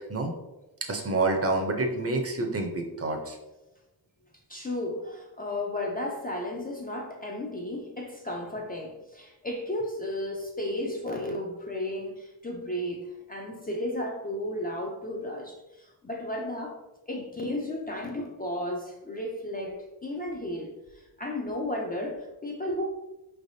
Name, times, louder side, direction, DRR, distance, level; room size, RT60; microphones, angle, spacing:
voice 1, 0.9-3.4, right 2 dB, 35° right, 3 dB, 0.6 m, -28 dB
voice 2, 4.5-16.8 17.1-20.7 21.2-22.9, left 1 dB, 25° left, 0 dB, 0.3 m, -33 dB
4.6 x 3.3 x 2.6 m, 1.0 s
wide cardioid pair, 145°, 41 cm